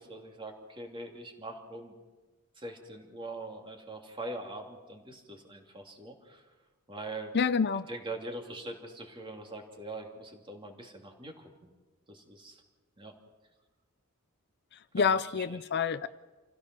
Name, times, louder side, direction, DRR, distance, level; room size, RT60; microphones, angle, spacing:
voice 1, 0.0-1.9 2.6-6.4 6.9-7.3 7.9-11.5 12.1-12.6 13.0-13.1 15.0-15.2, right 2 dB, 25° right, 2 dB, 2.9 m, -42 dB
voice 2, 7.3-7.9 14.7-16.1, left 6 dB, 50° left, 14 dB, 0.6 m, -28 dB
27.0 x 16.5 x 6.2 m, 1.2 s
head